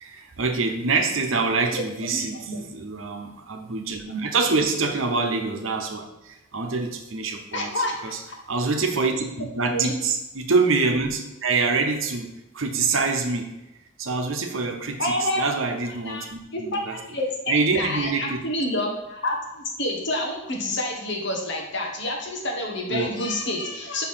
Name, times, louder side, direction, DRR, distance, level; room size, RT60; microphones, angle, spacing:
voice 1, 0.0-8.2 8.5-13.5 14.0-16.9 17.5-18.4 22.9-23.1, right 4 dB, 75° right, 5 dB, 0.9 m, -25 dB
voice 2, 2.1-2.6 4.0-4.2 7.5-8.4 9.7-9.9 15.0-15.4 16.0-16.3 16.5-24.0, left 1 dB, 60° left, 0 dB, 1.5 m, -28 dB
5.7 x 4.5 x 5.6 m, 0.94 s
head